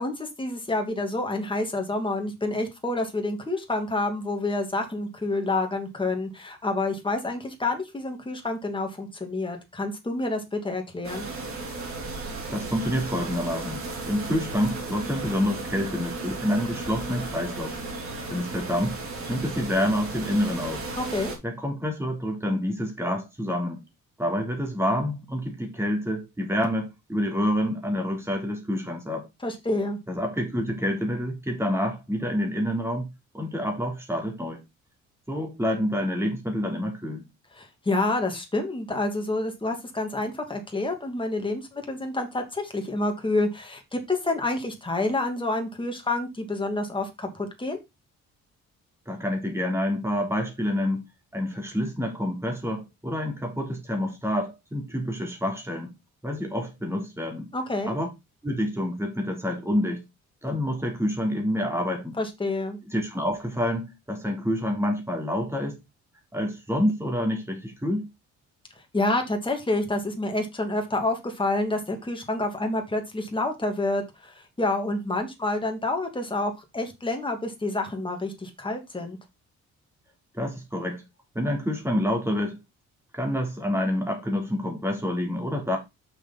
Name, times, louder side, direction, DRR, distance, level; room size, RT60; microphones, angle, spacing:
voice 1, 0.0-11.2 21.0-21.3 29.4-30.0 37.6-47.8 57.5-58.0 62.2-62.8 68.9-79.2, left 2 dB, 15° left, 2.6 m, -28 dB
sound 1, 11.0-21.4, right 3 dB, 45° right, 4.0 m, -35 dB
voice 2, 12.5-17.7 18.3-19.0 19.3-20.8 21.4-23.8 24.2-29.2 30.1-33.1 33.3-34.6 35.3-37.2 49.1-51.0 51.3-55.9 56.2-57.5 57.9-58.1 58.4-60.0 60.4-62.2 62.9-65.8 66.3-68.1 80.3-81.0 81.3-82.6 83.1-85.8, equal, 10° right, 3.8 m, -27 dB
6.7 x 6.2 x 4.3 m
cardioid pair, 90°, 30 cm